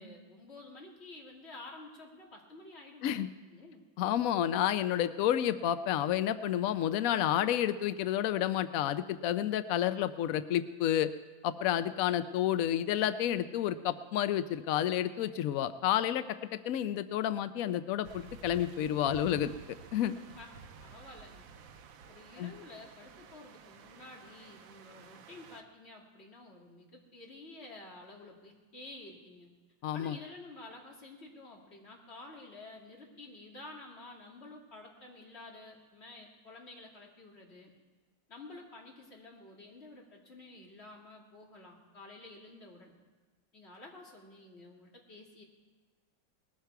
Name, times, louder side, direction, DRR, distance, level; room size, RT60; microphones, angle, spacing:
voice 1, 0.0-3.9 20.3-20.5 20.8-21.5 22.1-29.5 29.9-37.7 38.3-42.9 43.5-45.4, left 2 dB, 35° left, -2 dB, 2.7 m, -51 dB
voice 2, 4.0-11.1 11.4-16.2 16.7-19.5 19.9-20.2 22.4-22.5 29.8-30.2, left 11 dB, 90° left, 12 dB, 0.7 m, -30 dB
sound 1, 18.0-25.6, right 5 dB, 75° right, 1.6 m, -52 dB
20.0 x 14.0 x 4.7 m, 1.3 s
omnidirectional pair, 2.1 m